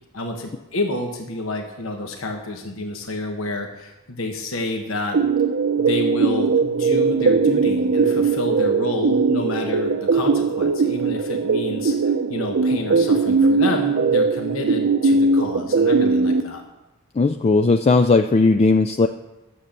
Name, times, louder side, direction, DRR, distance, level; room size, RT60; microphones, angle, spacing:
voice 1, 0.1-5.2 5.8-12.0 12.3-16.6, left 2 dB, 65° left, 3 dB, 1.2 m, -29 dB
sound 1, 5.1-16.4, right 4 dB, 60° right, 0.6 m, -19 dB
voice 2, 17.2-19.1, left 3 dB, 30° left, 7 dB, 0.3 m, -17 dB
11.0 x 7.5 x 6.7 m, 1.0 s
head